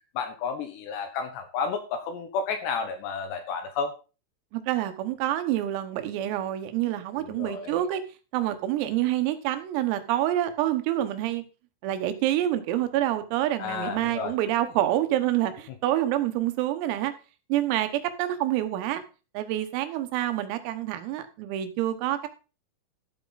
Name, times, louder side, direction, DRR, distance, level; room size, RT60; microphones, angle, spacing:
voice 1, 0.2-3.9 7.2-7.8 13.6-14.3, left 5 dB, 70° left, 7 dB, 2.9 m, -31 dB
voice 2, 4.5-8.0 8.3-11.4 11.8-17.1 17.5-19.0 19.4-22.3, right 13 dB, 90° right, 9 dB, 3.9 m, -27 dB
12.5 x 8.1 x 4.0 m, 0.33 s
omnidirectional pair, 5.9 m